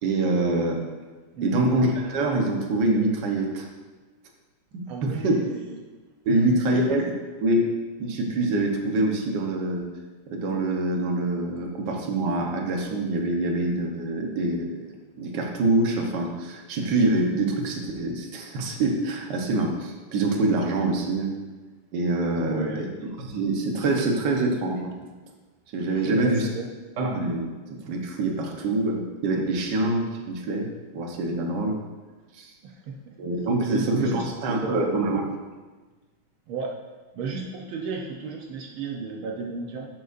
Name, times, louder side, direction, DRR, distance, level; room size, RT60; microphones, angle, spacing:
voice 1, 0.0-0.8 1.4-3.6 4.7-5.4 6.2-7.1 7.4-7.7 8.0-9.9 10.3-14.9 15.2-21.3 21.9-22.9 23.2-24.9 25.7-26.5 27.0-27.5 27.9-30.7 30.9-31.8 32.3-32.5 33.2-35.2, right 2 dB, 60° right, 1 dB, 1.7 m, -25 dB
voice 2, 1.3-1.7 4.9-5.8 6.3-6.8 22.4-22.9 26.1-26.7 32.6-33.2 33.7-34.9 36.5-36.7 37.1-39.9, right 4 dB, 80° right, 0 dB, 1.7 m, -33 dB
11.5 x 8.0 x 2.6 m, 1.3 s
omnidirectional pair, 2.3 m